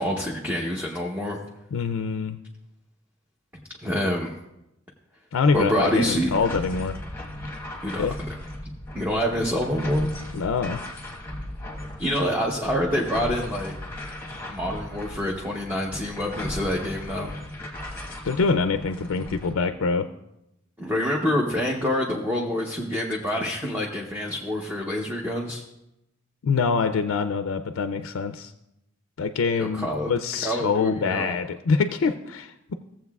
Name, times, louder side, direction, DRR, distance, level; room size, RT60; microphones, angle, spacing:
voice 1, 0.0-1.4 3.8-4.4 5.5-6.3 7.8-8.2 8.9-10.1 12.0-13.7 14.5-17.3 20.8-25.6 29.5-30.1 30.4-31.4, left 1 dB, 10° right, -2 dB, 0.7 m, -26 dB
voice 2, 1.7-2.4 5.3-7.0 8.0-8.1 10.3-10.8 18.2-20.1 26.4-28.5 29.2-32.7, left 4 dB, 80° left, 10 dB, 0.4 m, -25 dB
sound 1, 5.5-19.5, left 1 dB, 10° left, 1.3 m, -37 dB
17.0 x 7.4 x 2.3 m, 0.87 s
head